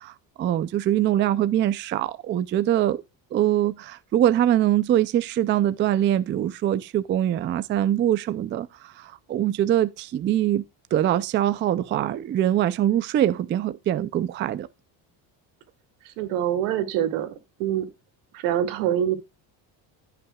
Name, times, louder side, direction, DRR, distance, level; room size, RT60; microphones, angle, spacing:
voice 1, 0.0-3.0 3.3-10.6 10.9-14.7, right 11 dB, 25° right, 0.3 m, -23 dB
voice 2, 16.0-17.9 18.3-19.1, right 10 dB, 85° right, 2.5 m, -25 dB
16.5 x 5.7 x 2.3 m
cardioid pair, 140°, 50 cm